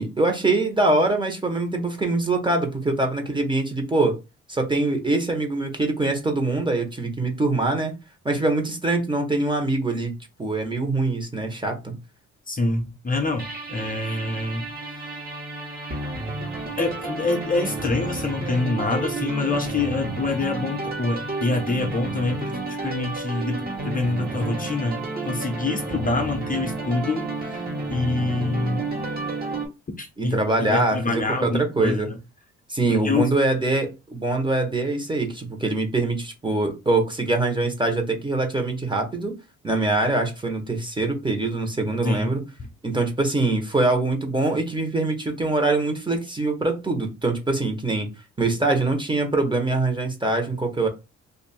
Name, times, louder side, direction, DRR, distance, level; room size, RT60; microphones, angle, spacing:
voice 1, 0.0-4.2 4.5-8.0 8.2-10.1 10.4-11.9 30.2-32.1 32.7-39.3 39.6-42.4 42.8-48.1 48.4-50.9, right 2 dB, 15° right, 1.1 m, -23 dB
voice 2, 12.5-14.7 15.0-15.1 16.8-22.5 22.8-28.9 30.0-32.0 32.9-33.3 42.0-42.3 42.6-42.7, left 3 dB, 30° left, 0.8 m, -26 dB
sound 1, 13.4-29.7, right 2 dB, 30° right, 1.3 m, -31 dB
2.9 x 2.6 x 4.3 m
cardioid pair, 90°, 30 cm